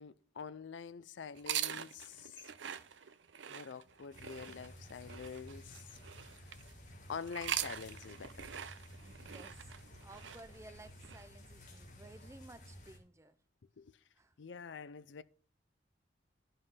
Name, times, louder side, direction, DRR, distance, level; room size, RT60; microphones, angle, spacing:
voice 1, 0.0-2.5 3.5-6.0 7.1-8.5 13.8-13.9 14.4-15.2, left 6 dB, 85° left, 0.5 m, -46 dB
sound 1, 1.3-6.7 7.2-11.2, right 10 dB, 85° right, 0.6 m, -43 dB
sound 2, 4.1-13.0, left 1 dB, 40° left, 2.2 m, -54 dB
voice 2, 9.0-9.7 10.0-13.4 14.2-14.3, right 2 dB, 15° right, 0.5 m, -56 dB
11.0 x 5.5 x 5.6 m
head